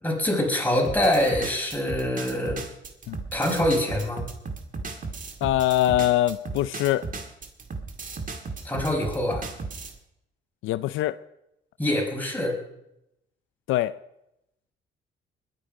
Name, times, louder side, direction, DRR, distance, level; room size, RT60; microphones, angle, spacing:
voice 1, 0.0-2.6 3.3-4.2 8.6-9.5 11.8-12.6, left 1 dB, 10° left, 5.2 m, -25 dB
sound 1, 0.8-10.0, right 4 dB, 40° right, 2.1 m, -35 dB
voice 2, 5.4-7.1 10.6-11.2 13.7-13.9, left 14 dB, 90° left, 0.5 m, -23 dB
20.5 x 9.8 x 5.2 m
cardioid pair, 90°, 20 cm